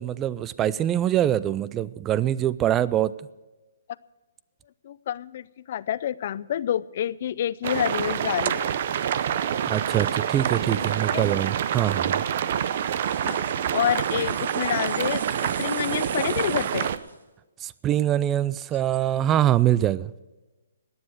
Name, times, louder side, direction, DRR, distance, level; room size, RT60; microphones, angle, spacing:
voice 1, 0.0-3.1 9.6-12.2 17.6-20.1, right 12 dB, 20° right, 20 dB, 0.4 m, -24 dB
voice 2, 4.8-8.7 10.8-10.9 11.1-11.3 13.2-13.4 13.7-16.9, left 11 dB, 50° left, 19 dB, 0.4 m, -28 dB
sound 1, 7.6-17.0, right 9 dB, 50° right, 0.7 m, -27 dB
sound 2, 12.4-17.2, right 4 dB, 85° right, 1.8 m, -42 dB
17.0 x 9.7 x 6.4 m, 1.1 s
hypercardioid pair, 145°, 0 cm